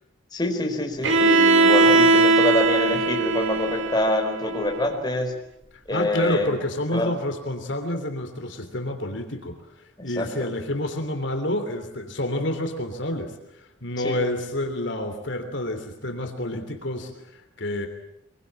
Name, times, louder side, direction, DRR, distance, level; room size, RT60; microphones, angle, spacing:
voice 1, 0.3-5.3 5.9-6.5 6.9-7.1 10.0-10.5 14.0-14.1, left 1 dB, 20° left, 1 dB, 4.6 m, -25 dB
Bowed string instrument, 1.0-4.9, right 3 dB, 70° right, 2.6 m, -19 dB
voice 2, 5.9-17.9, left 1 dB, 65° left, 6 dB, 3.2 m, -29 dB
24.5 x 23.0 x 8.9 m, 0.79 s
head